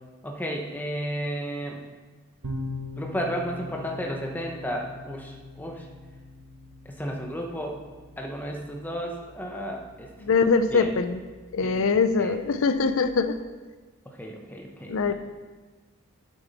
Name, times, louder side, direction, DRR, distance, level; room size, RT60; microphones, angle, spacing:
voice 1, 0.2-1.8 3.0-5.9 6.8-7.8 8.2-10.1 10.7-10.9 11.6-12.3 14.0-15.1, equal, 10° left, 1 dB, 0.8 m, -33 dB
sound 1, 2.4-11.9, left 2 dB, 90° right, 1.1 m, -42 dB
voice 2, 10.2-11.2 11.5-13.4 14.9-15.1, left 4 dB, 65° left, 10 dB, 0.5 m, -23 dB
8.7 x 7.2 x 4.1 m, 1.3 s
head